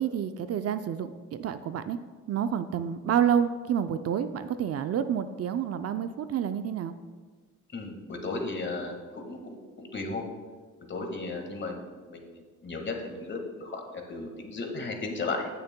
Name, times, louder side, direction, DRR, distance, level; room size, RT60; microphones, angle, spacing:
voice 1, 0.0-2.0 2.3-6.9, right 8 dB, 55° right, 10 dB, 0.5 m, -29 dB
voice 2, 7.7-10.3 10.9-11.8 12.1-15.5, left 3 dB, 40° left, 3 dB, 1.7 m, -35 dB
15.5 x 6.7 x 2.2 m, 1.5 s
cardioid pair, 90°, 30 cm